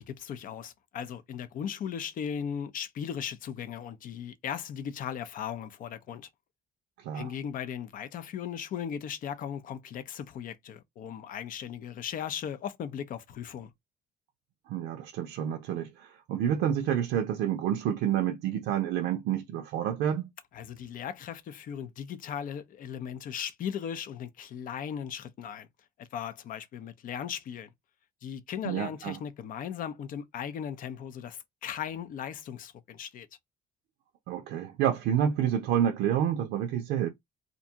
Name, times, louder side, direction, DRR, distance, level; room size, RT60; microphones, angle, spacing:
voice 1, 0.0-6.3 7.1-13.7 20.5-25.7 26.0-27.7 28.2-33.3, left 8 dB, 55° left, 0.5 m, -37 dB
voice 2, 7.0-7.3 14.7-20.3 28.6-29.2 34.3-37.1, right 10 dB, 85° right, 0.5 m, -29 dB
2.6 x 2.2 x 2.7 m
cardioid pair, 110°, 17 cm